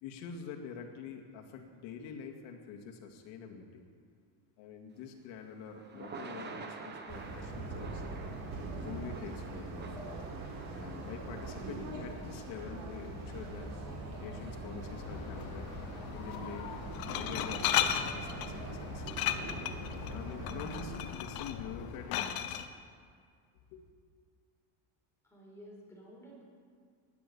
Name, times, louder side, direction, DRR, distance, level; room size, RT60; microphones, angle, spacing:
voice 1, 0.0-3.8 4.6-8.0 8.8-9.9 10.7-13.7 14.2-15.7 16.1-16.7 17.1-19.0 20.1-22.6 23.7-23.8, left 6 dB, 65° left, 2 dB, 2.4 m, -46 dB
Thunder / Rain, 5.0-19.2, right 4 dB, 20° right, 1.1 m, -51 dB
sound 1, 7.1-21.0, right 2 dB, 45° right, 3.9 m, -42 dB
Glass, 14.8-22.6, left 10 dB, 50° left, 1.0 m, -36 dB
voice 2, 25.2-26.4, equal, 5° left, -4 dB, 4.7 m, -52 dB
19.5 x 10.5 x 7.1 m, 2.1 s
cardioid pair, 160°, 48 cm